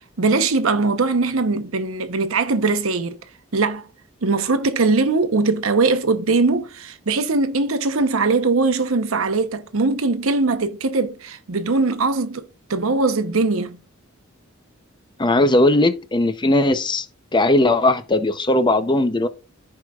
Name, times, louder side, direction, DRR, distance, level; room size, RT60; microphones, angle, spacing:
voice 1, 0.2-3.2 3.5-3.9 4.2-13.8, right 3 dB, 80° right, 0.8 m, -21 dB
voice 2, 15.2-17.1 17.3-19.3, left 2 dB, 20° left, 0.6 m, -18 dB
14.5 x 4.8 x 2.3 m
head